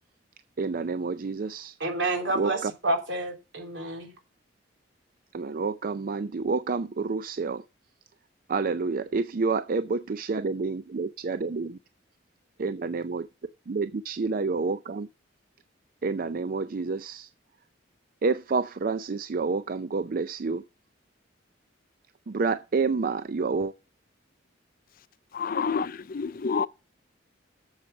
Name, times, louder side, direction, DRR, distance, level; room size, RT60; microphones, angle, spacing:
voice 1, 0.6-1.8 2.3-2.7 5.3-7.6 8.5-11.8 12.6-13.3 13.7-15.1 16.0-17.3 18.2-20.6 22.3-23.7, right 4 dB, 50° right, 0.4 m, -29 dB
voice 2, 1.8-4.1, right 2 dB, 75° right, 3.4 m, -29 dB
voice 3, 25.3-26.7, left 5 dB, 50° left, 0.5 m, -28 dB
7.7 x 7.4 x 7.0 m
head